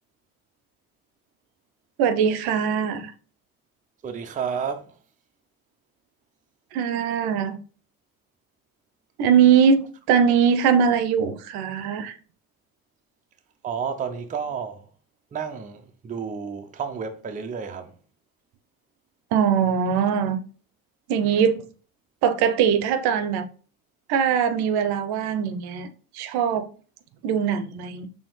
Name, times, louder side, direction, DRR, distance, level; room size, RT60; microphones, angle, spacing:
voice 1, 2.0-3.1 6.7-7.5 9.2-12.1 19.3-20.4 21.1-21.6 22.2-23.4 24.1-25.9 26.1-26.7 27.2-28.1, right 7 dB, 55° right, 0.7 m, -21 dB
voice 2, 4.0-4.9 13.6-14.8 15.3-17.9, right 6 dB, 20° right, 0.5 m, -31 dB
4.2 x 3.4 x 3.1 m
hypercardioid pair, 60°, 45 cm